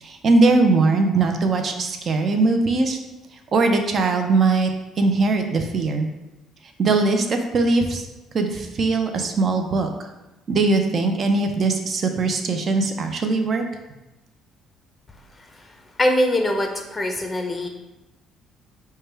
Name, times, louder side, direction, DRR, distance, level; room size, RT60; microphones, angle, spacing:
voice 1, 0.0-3.0 3.5-4.7 5.0-6.1 6.8-8.0 8.3-9.9 10.5-13.6, right 3 dB, 45° right, 5 dB, 0.5 m, -20 dB
voice 2, 16.0-17.7, left 1 dB, 15° left, 3 dB, 0.6 m, -22 dB
4.8 x 2.2 x 3.3 m, 1.0 s
cardioid pair, 100°, 0 cm